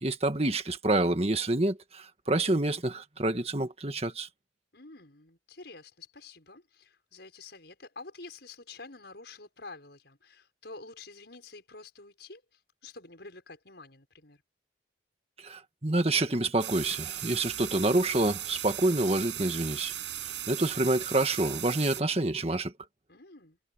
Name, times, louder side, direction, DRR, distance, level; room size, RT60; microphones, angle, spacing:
voice 1, 0.0-4.3 15.4-19.9 20.5-22.7, right 2 dB, 35° right, 1.7 m, -27 dB
voice 2, 4.7-14.4 23.1-23.6, left 3 dB, 65° left, 6.3 m, -48 dB
sound 1, 16.6-22.0, right 13 dB, 75° right, 6.8 m, -37 dB
head